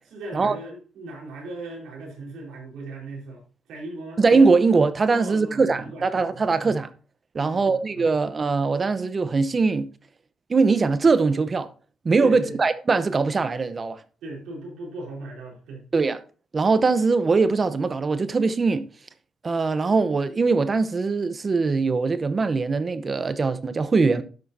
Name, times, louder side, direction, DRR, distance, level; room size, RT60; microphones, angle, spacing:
voice 1, 0.1-3.4 3.7-4.2 5.1-6.0 6.3-6.4 7.3-8.1 12.2-12.6 14.2-15.8, right 2 dB, 80° right, 4.4 m, -38 dB
voice 2, 4.2-6.9 7.3-9.9 10.5-11.7 12.0-14.0 15.9-16.2 16.5-18.8 19.4-24.2, right 4 dB, 35° right, 0.8 m, -21 dB
11.5 x 6.2 x 2.8 m
cardioid pair, 90°, 0 cm